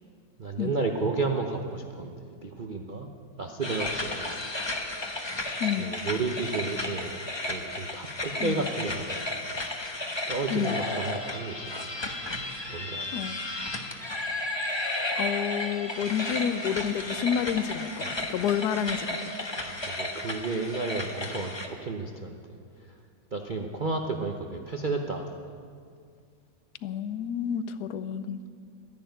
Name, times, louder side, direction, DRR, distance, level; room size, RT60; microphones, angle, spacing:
voice 1, 0.4-3.1 3.4-4.4 5.8-7.2 7.5-9.3 10.3-11.7 12.7-13.2 19.6-22.6 23.3-25.6, right 3 dB, 60° right, 2 dB, 0.5 m, -32 dB
sound 1, 3.6-21.7, left 2 dB, 20° left, 0.8 m, -33 dB
voice 2, 5.6-5.9 8.4-8.7 10.5-10.8 13.1-13.4 15.1-19.3 26.8-28.4, left 8 dB, 65° left, 12 dB, 1.1 m, -29 dB
13.0 x 11.0 x 9.2 m, 2.2 s
omnidirectional pair, 2.1 m